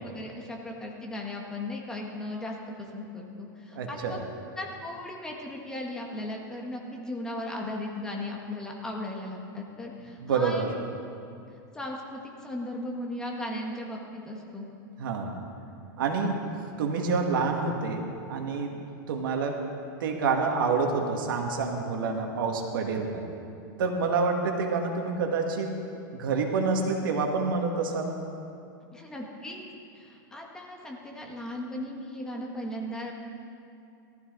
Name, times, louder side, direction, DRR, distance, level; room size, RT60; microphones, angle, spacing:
voice 1, 0.1-4.2 4.5-10.6 11.7-14.7 28.9-29.6 29.9-33.1, left 1 dB, 5° left, -1 dB, 1.5 m, -37 dB
voice 2, 3.7-4.2 10.2-10.7 15.0-15.3 16.0-16.5 16.8-18.0 18.3-18.7 19.1-19.6 20.0-23.2 23.8-25.7 26.1-28.1, right 4 dB, 80° right, 2 dB, 2.1 m, -27 dB
17.5 x 14.0 x 4.0 m, 2.6 s
supercardioid pair, 160°, 11 cm